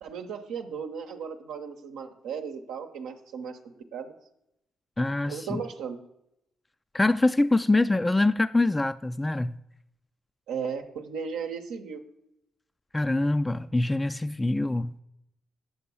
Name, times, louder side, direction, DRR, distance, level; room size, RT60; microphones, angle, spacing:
voice 1, 0.0-3.6 3.9-4.1 5.3-6.0 10.5-12.0, right 6 dB, 85° right, 0.9 m, -35 dB
voice 2, 5.0-5.6 6.9-9.6 12.9-14.9, left 2 dB, 20° left, 0.4 m, -24 dB
8.6 x 6.0 x 6.9 m
supercardioid pair, 55°, 0 cm